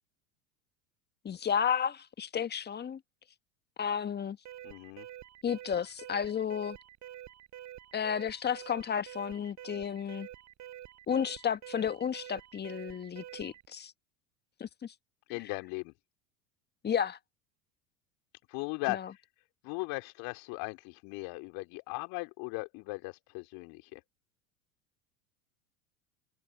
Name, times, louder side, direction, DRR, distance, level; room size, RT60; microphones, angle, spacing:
voice 1, 1.2-3.0 3.8-4.4 5.4-6.8 7.9-10.3 11.1-13.9 14.6-14.9 16.8-17.2 18.9-19.0, left 8 dB, 25° left, 1.5 m, -32 dB
Alarm, 4.5-13.7, right 13 dB, 40° right, 7.3 m, -48 dB
voice 2, 4.6-5.1 15.3-15.9 18.5-19.2 19.6-24.0, left 29 dB, 55° left, 3.5 m, -38 dB
hypercardioid pair, 80°, 41 cm